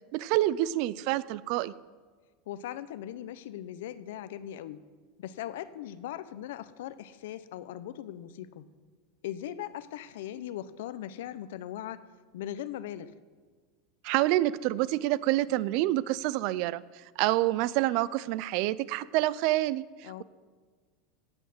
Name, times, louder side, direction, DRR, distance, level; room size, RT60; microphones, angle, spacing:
voice 1, 0.1-1.7 14.0-16.8 17.2-20.2, right 16 dB, 55° right, 19 dB, 0.4 m, -27 dB
voice 2, 2.5-4.8 5.2-8.7 9.2-12.0 12.3-13.1 20.0-20.2, left 11 dB, 80° left, 14 dB, 0.7 m, -39 dB
16.5 x 6.4 x 7.7 m, 1.5 s
supercardioid pair, 145°, 0 cm